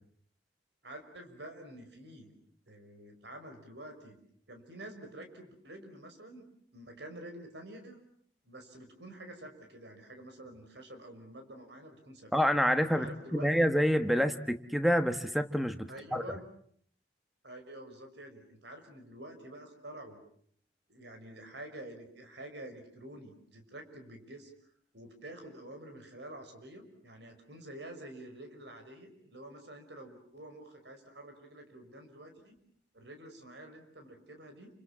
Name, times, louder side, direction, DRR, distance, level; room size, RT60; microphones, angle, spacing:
voice 1, 0.8-2.3 2.7-4.2 4.5-6.5 6.7-8.0 8.5-12.3 13.0-13.7 15.9-16.4 17.4-20.2 20.9-24.5 24.9-32.6 32.9-34.7, right 1 dB, 75° right, 6 dB, 5.7 m, -48 dB
voice 2, 12.3-13.1 13.3-16.2, equal, ahead, 9 dB, 1.3 m, -27 dB
29.0 x 26.5 x 7.4 m, 0.63 s
head